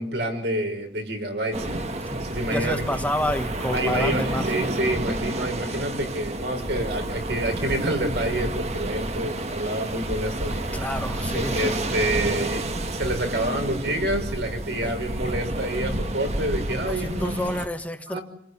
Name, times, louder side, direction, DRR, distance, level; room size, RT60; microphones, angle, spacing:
voice 1, 0.0-1.8 2.1-2.8 3.7-10.8 11.3-17.3 18.1-18.2, right 1 dB, 75° right, 6.0 m, -28 dB
sound 1, 1.5-17.7, right 1 dB, 35° right, 1.4 m, -30 dB
voice 2, 2.5-4.5 10.7-11.8 14.8-14.9 16.9-18.2, left 1 dB, 10° left, 1.2 m, -29 dB
28.0 x 16.0 x 10.0 m
head